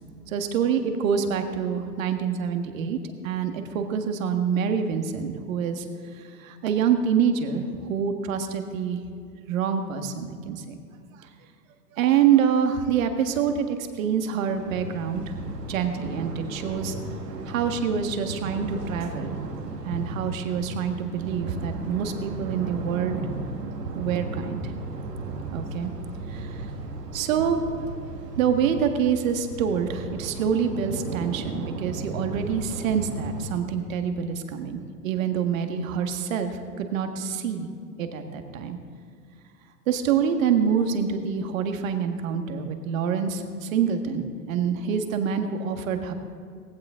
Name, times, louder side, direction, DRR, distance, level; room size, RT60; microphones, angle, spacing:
voice 1, 0.3-3.0 3.2-5.9 6.2-9.0 9.5-10.8 12.0-15.4 15.7-16.9 17.5-19.4 19.8-23.2 23.9-24.6 25.5-25.9 26.3-26.7 27.1-27.6 28.4-37.7 38.0-38.8 39.9-46.1, right 7 dB, 55° right, 6 dB, 1.7 m, -26 dB
sound 1, 14.5-33.5, right 3 dB, 75° right, 1.8 m, -35 dB
18.5 x 15.5 x 3.8 m, 2.3 s
figure-of-eight pair, 100°, 48 cm